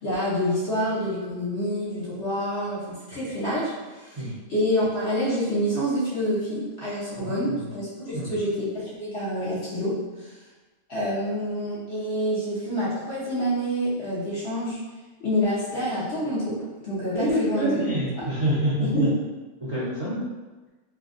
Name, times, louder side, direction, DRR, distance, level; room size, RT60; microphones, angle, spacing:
voice 1, 0.0-3.7 4.0-4.2 4.5-9.9 10.2-10.3 10.9-14.8 15.2-16.6 16.8-17.8 18.2-18.3 18.8-19.1, equal, 50° left, -8 dB, 1.0 m, -27 dB
voice 2, 7.1-7.7 8.0-8.4 17.1-19.1 19.6-20.2, equal, 30° right, -11 dB, 0.7 m, -27 dB
3.4 x 2.2 x 2.5 m, 1.2 s
omnidirectional pair, 1.5 m